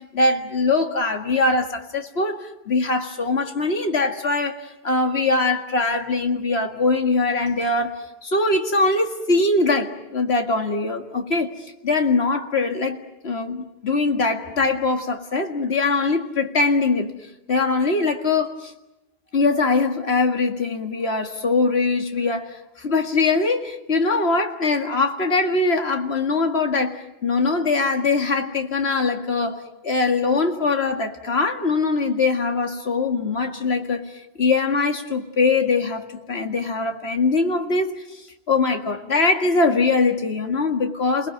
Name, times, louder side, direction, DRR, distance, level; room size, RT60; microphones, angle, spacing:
voice 1, 0.0-8.0 8.2-11.5 11.8-17.1 17.5-18.7 19.3-34.0 34.4-38.2 38.5-41.3, left 3 dB, 85° left, 4 dB, 2.2 m, -22 dB
28.5 x 19.5 x 9.2 m, 0.98 s
omnidirectional pair, 1.0 m